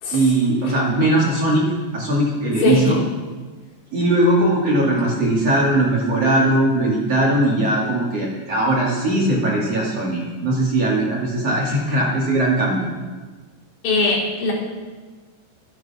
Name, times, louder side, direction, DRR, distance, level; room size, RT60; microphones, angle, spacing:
voice 1, 0.1-3.0 3.9-12.8, right 1 dB, 40° right, -4 dB, 3.0 m, -19 dB
voice 2, 2.5-3.0 13.8-14.5, left 3 dB, 70° left, -3 dB, 5.0 m, -20 dB
25.5 x 10.5 x 4.4 m, 1.3 s
omnidirectional pair, 5.2 m